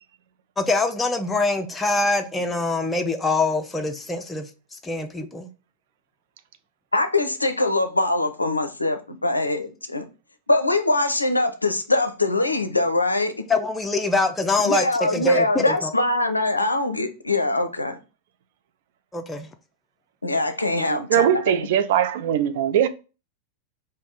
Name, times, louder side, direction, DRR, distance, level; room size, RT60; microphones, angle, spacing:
voice 1, 0.6-5.5 13.5-15.9 19.1-19.5, left 3 dB, 10° left, 0.5 m, -24 dB
voice 2, 6.9-10.1 10.5-13.3 14.6-18.0 20.2-21.4, left 2 dB, 80° left, 0.4 m, -23 dB
voice 3, 20.8-22.9, right 10 dB, 55° right, 0.3 m, -21 dB
3.4 x 2.6 x 3.9 m
figure-of-eight pair, 90°, 0 cm